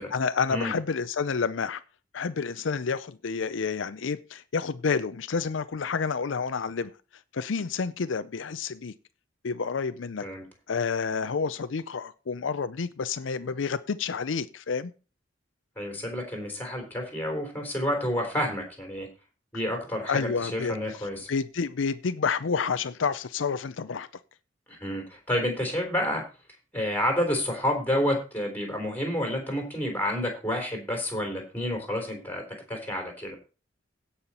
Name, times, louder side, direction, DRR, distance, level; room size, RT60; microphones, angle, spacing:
voice 1, 0.1-1.8 2.1-6.9 7.3-8.9 9.4-10.2 10.7-14.9 20.1-24.1, left 5 dB, 70° left, 0.5 m, -29 dB
voice 2, 15.8-19.1 19.5-21.3 24.7-26.2 26.7-32.4 32.7-33.4, left 1 dB, 10° left, 3.7 m, -29 dB
16.5 x 5.7 x 4.3 m
head